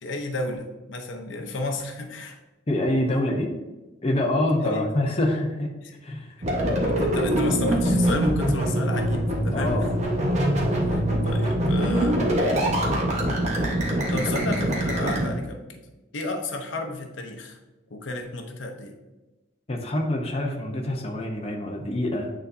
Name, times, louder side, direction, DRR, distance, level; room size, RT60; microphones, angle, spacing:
voice 1, 0.0-2.4 4.6-4.8 6.9-9.9 10.9-12.3 14.1-15.8 16.1-17.6 17.9-18.9, left 2 dB, 75° left, 4 dB, 0.7 m, -32 dB
voice 2, 2.7-3.5 4.0-5.7 6.0-6.4 9.5-9.9 14.3-14.4 19.7-22.3, left 1 dB, 30° left, 1 dB, 0.7 m, -26 dB
sound 1, 6.4-15.3, right 1 dB, 35° right, 1.1 m, -23 dB
8.9 x 4.1 x 2.6 m, 1.1 s
head